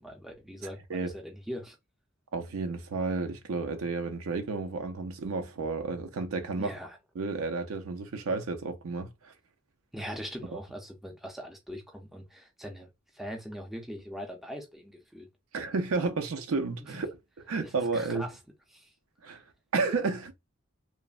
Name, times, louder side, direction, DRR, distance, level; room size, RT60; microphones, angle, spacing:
voice 1, 0.0-1.8 6.6-7.0 9.9-12.9 13.1-15.3 16.8-17.0 17.6-18.3 18.7-18.9, equal, ahead, 0.4 m, -41 dB
voice 2, 2.3-6.7 7.2-9.3 15.5-17.2 17.5-18.3 19.2-19.4 19.7-20.3, right 4 dB, 85° right, 0.5 m, -31 dB
3.1 x 2.0 x 2.3 m
head